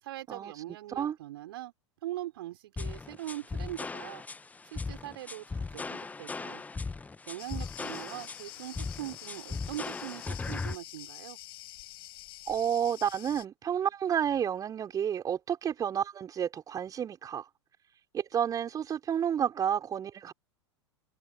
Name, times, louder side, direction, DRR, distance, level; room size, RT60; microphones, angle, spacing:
voice 1, 0.0-1.7 2.0-4.2 4.7-6.6 7.3-11.4, right 15 dB, 55° right, 5.2 m, -41 dB
sound 1, 2.8-10.8, left 4 dB, 10° left, 1.5 m, -38 dB
Cricket, 7.4-13.4, left 17 dB, 55° left, 6.8 m, -47 dB
voice 2, 12.5-17.5 18.1-20.3, right 9 dB, 25° right, 5.3 m, -30 dB
figure-of-eight pair, 90°, 15 cm